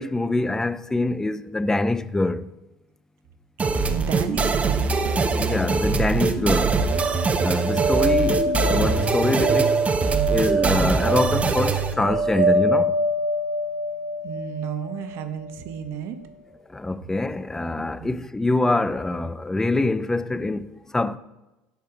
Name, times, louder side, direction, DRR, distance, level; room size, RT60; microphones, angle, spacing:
voice 1, 0.0-2.5 5.3-6.8 7.4-9.8 10.3-12.9 16.7-21.2, left 2 dB, 10° left, 0.4 m, -25 dB
sound 1, 3.6-11.9, right 4 dB, 30° right, 0.6 m, -23 dB
voice 2, 3.9-5.3 14.2-16.2 18.0-18.1, right 9 dB, 65° right, 0.7 m, -33 dB
sound 2, 6.5-15.7, right 2 dB, 85° right, 1.1 m, -25 dB
9.2 x 3.5 x 4.7 m
supercardioid pair, 80°, 5 cm